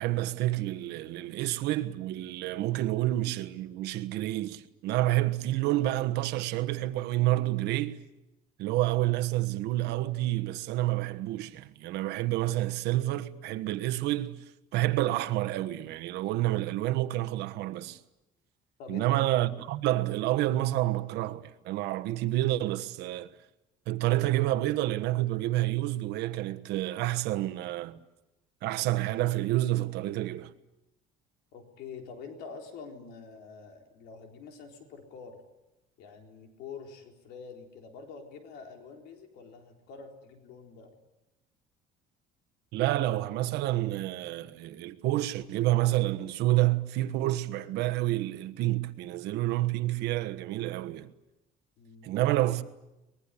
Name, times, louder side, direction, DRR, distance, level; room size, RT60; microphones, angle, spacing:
voice 1, 0.0-8.0 8.6-14.4 14.7-18.0 18.9-23.3 23.9-28.0 28.6-30.5 42.7-51.1 52.0-52.6, right 16 dB, 90° right, 1.4 m, -29 dB
voice 2, 18.8-19.2 31.5-35.4 36.0-40.9 51.8-52.1, left 5 dB, 80° left, 4.0 m, -46 dB
24.0 x 21.0 x 9.9 m
cardioid pair, 170°, 17 cm